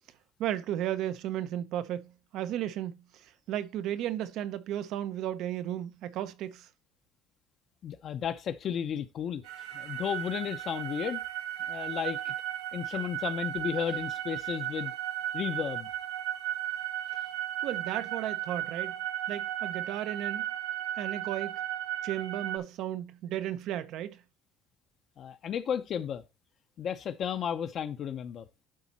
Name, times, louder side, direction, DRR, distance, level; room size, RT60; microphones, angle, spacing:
voice 1, 0.4-3.0 3.5-6.7 17.6-18.9 19.3-20.5 21.0-21.6 22.0-24.2, right 12 dB, 60° right, 0.7 m, -34 dB
voice 2, 7.8-9.4 9.7-11.2 11.7-12.3 12.7-14.9 15.3-15.9 25.2-26.2 26.8-28.5, left 8 dB, 40° left, 0.7 m, -33 dB
sound 1, 9.4-22.6, right 12 dB, 90° right, 0.9 m, -35 dB
11.5 x 4.1 x 4.2 m
cardioid pair, 150°, 0 cm